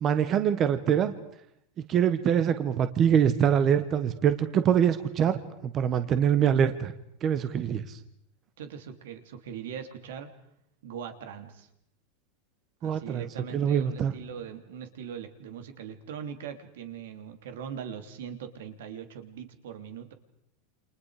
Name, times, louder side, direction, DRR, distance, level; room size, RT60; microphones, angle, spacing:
voice 1, 0.0-1.1 1.9-5.4 5.7-6.9 7.2-8.0 12.8-13.3 13.5-14.1, right 8 dB, 25° right, 11 dB, 1.2 m, -24 dB
voice 2, 8.6-10.3 10.8-11.7 12.8-20.1, right 8 dB, 80° right, 8 dB, 3.1 m, -41 dB
29.0 x 27.5 x 4.9 m, 0.75 s
supercardioid pair, 170°, 0 cm